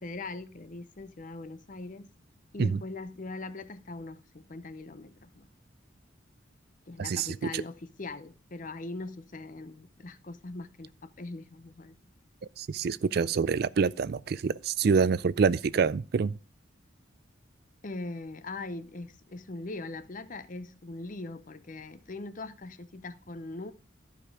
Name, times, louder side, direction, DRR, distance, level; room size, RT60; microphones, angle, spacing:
voice 1, 0.0-2.1 2.5-5.5 6.9-12.0 17.8-23.7, left 2 dB, 40° left, 0.7 m, -41 dB
voice 2, 12.6-16.3, right 5 dB, 55° right, 0.4 m, -26 dB
13.5 x 5.1 x 4.7 m
head